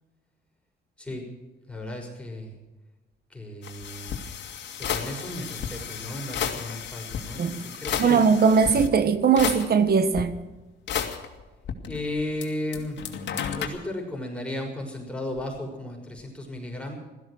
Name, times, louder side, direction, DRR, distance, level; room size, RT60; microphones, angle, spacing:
voice 1, 1.7-2.5 3.3-4.2 4.8-8.2 11.9-13.0 13.6-16.9, left 1 dB, 5° left, 6.0 m, -34 dB
sound 1, 3.6-8.9 9.4-10.2 10.9-12.5 12.7-13.7, left 8 dB, 65° left, 2.2 m, -32 dB
voice 2, 8.0-10.4, right 6 dB, 50° right, 1.4 m, -20 dB
16.0 x 14.0 x 6.4 m
cardioid pair, 90°, 20 cm